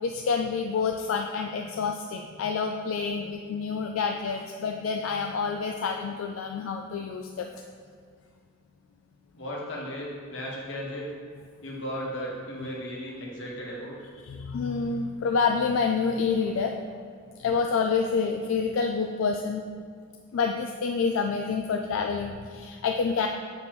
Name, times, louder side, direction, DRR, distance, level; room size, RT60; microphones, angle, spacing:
voice 1, 0.0-7.5 14.2-16.7 17.4-19.7 20.3-23.3, left 5 dB, 85° left, 3 dB, 0.3 m, -28 dB
voice 2, 9.3-11.1 11.6-13.9, equal, 65° left, -4 dB, 1.3 m, -35 dB
6.7 x 5.2 x 3.0 m, 2.1 s
head